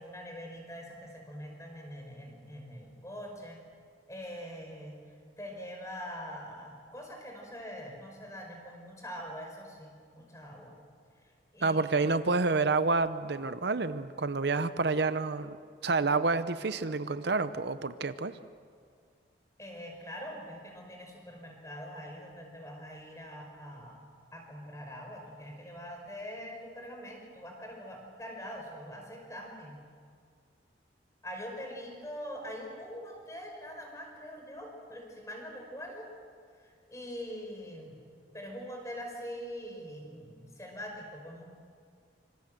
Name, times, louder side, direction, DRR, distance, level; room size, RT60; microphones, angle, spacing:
voice 1, 0.0-3.6 4.1-4.9 5.4-10.8 11.5-11.9 19.6-24.1 24.3-29.8 31.2-36.1 36.6-38.0 38.3-41.4, equal, 15° left, 2 dB, 5.2 m, -43 dB
voice 2, 11.6-15.6 15.8-18.4, right 3 dB, 60° right, 12 dB, 0.8 m, -28 dB
26.0 x 25.5 x 7.8 m, 2.1 s
head